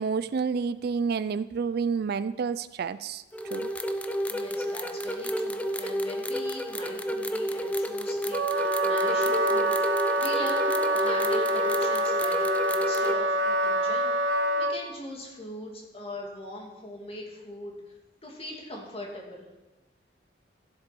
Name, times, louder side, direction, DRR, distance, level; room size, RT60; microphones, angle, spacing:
voice 1, 0.0-3.2 3.5-3.7, right 5 dB, 55° right, 15 dB, 0.4 m, -29 dB
sound 1, 3.3-13.2, equal, 10° left, 0.5 m, -31 dB
voice 2, 4.3-17.9 18.2-19.5, left 1 dB, 30° left, -1 dB, 2.6 m, -41 dB
Wind instrument woodwind instrument, 8.3-14.8, right 1 dB, 70° right, 0.8 m, -26 dB
14.0 x 7.4 x 5.3 m, 1.1 s
head